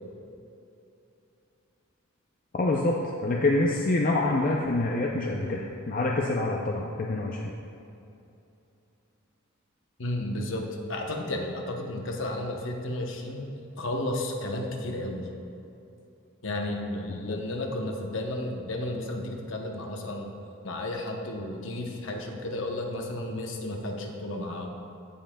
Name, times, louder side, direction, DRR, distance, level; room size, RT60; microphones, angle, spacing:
voice 1, 2.5-3.0 3.2-7.5 17.2-17.4, left 2 dB, 40° left, -1 dB, 0.4 m, -26 dB
voice 2, 10.0-13.5 13.8-15.3 16.4-20.3 20.6-24.7, left 1 dB, 60° left, 2 dB, 0.9 m, -33 dB
15.5 x 5.5 x 2.3 m, 2.7 s
head